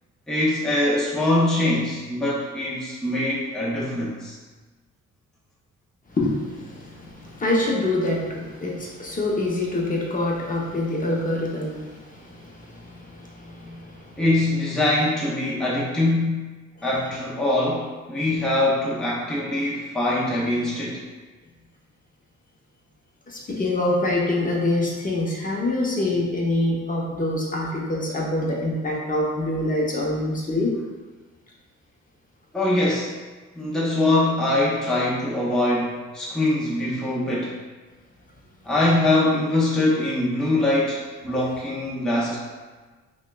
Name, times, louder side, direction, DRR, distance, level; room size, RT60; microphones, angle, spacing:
voice 1, 0.3-4.4 14.2-16.5 16.8-21.0 32.5-33.1 33.6-37.5 38.6-42.4, left 1 dB, ahead, -6 dB, 0.6 m, -23 dB
voice 2, 6.1-14.2 23.3-30.7, left 2 dB, 30° left, -3 dB, 0.8 m, -25 dB
5.5 x 2.3 x 2.3 m, 1.3 s
cardioid pair, 90°, 30 cm